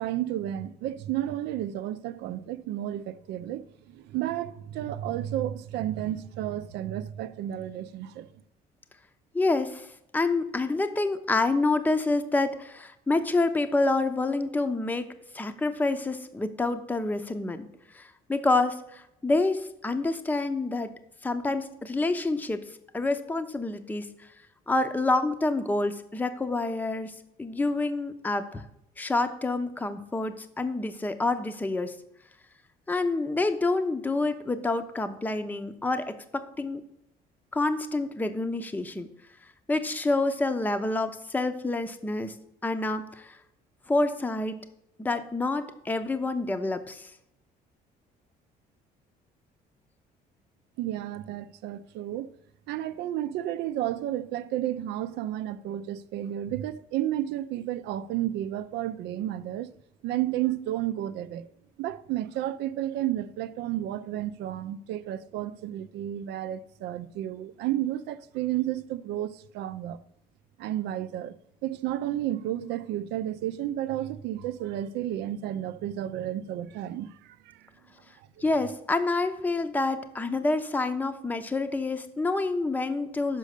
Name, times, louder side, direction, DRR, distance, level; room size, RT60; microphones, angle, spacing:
voice 1, 0.0-8.3 50.8-52.3 52.7-59.8 60.0-61.5 61.8-70.0 70.6-71.4 71.6-77.7, right 12 dB, 85° right, 0.5 m, -32 dB
voice 2, 9.3-9.9 10.1-15.1 15.3-17.7 17.9-20.9 21.2-22.6 22.9-24.1 24.7-27.1 27.4-28.6 29.0-32.0 32.9-36.8 37.5-39.1 39.7-42.3 42.6-43.4 43.9-44.6 45.0-47.1 78.4-83.4, left 2 dB, 10° left, 0.6 m, -27 dB
6.4 x 5.2 x 6.6 m
cardioid pair, 110°, 17 cm